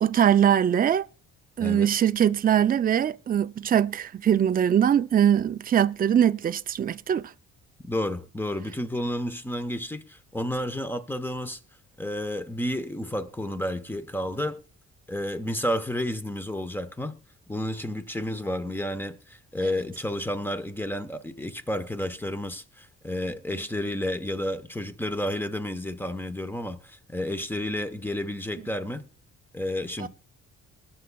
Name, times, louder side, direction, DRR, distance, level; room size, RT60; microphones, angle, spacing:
voice 1, 0.0-1.1 1.6-7.2 30.0-30.1, right 9 dB, 30° right, 0.4 m, -22 dB
voice 2, 7.8-11.6 12.0-14.6 15.1-17.2 17.5-29.1 29.5-30.1, left 1 dB, 5° left, 1.0 m, -31 dB
21.0 x 7.2 x 2.3 m
cardioid pair, 90°, 30 cm